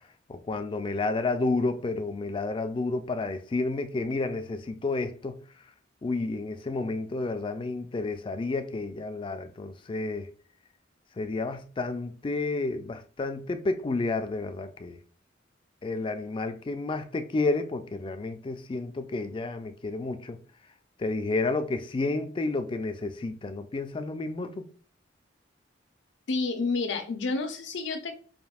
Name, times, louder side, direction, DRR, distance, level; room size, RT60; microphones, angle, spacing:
voice 1, 0.3-5.4 6.0-10.3 11.2-15.0 15.8-20.4 21.0-24.7, left 3 dB, 25° left, 0.3 m, -31 dB
voice 2, 26.3-28.1, left 3 dB, 70° left, 0.6 m, -29 dB
5.1 x 2.7 x 2.3 m
head